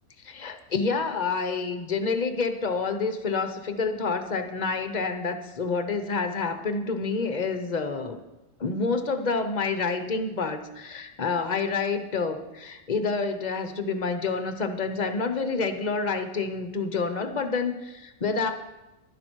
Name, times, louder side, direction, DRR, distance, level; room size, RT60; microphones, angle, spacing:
voice 1, 0.2-8.2 8.6-18.5, left 4 dB, 40° left, 8 dB, 0.7 m, -28 dB
11.0 x 11.0 x 4.5 m, 1.0 s
omnidirectional pair, 1.5 m